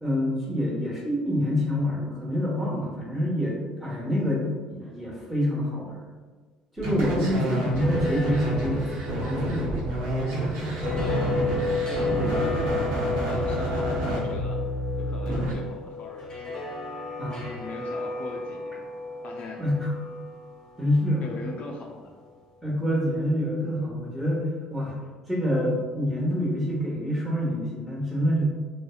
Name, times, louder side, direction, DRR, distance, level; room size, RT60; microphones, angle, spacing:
voice 1, 0.0-6.1 6.7-8.9 9.2-9.9 12.2-12.4 15.3-15.5 17.2-17.5 19.6-19.9 20.8-21.3 22.6-24.9 25.3-28.4, equal, 5° right, -4 dB, 0.9 m, -27 dB
sound 1, 6.8-15.5, right 1 dB, 80° right, 0.8 m, -29 dB
sound 2, 7.5-22.5, left 1 dB, 25° left, 0.8 m, -35 dB
sound 3, 10.8-20.9, left 9 dB, 40° right, 0.7 m, -37 dB
voice 2, 11.0-11.4 11.9-12.1 12.4-12.8 13.3-14.6 15.0-16.7 17.5-18.9 19.2-19.6 21.2-22.1, left 3 dB, 50° left, 0 dB, 0.3 m, -39 dB
2.6 x 2.1 x 2.4 m, 1.4 s
supercardioid pair, 75°, 3 cm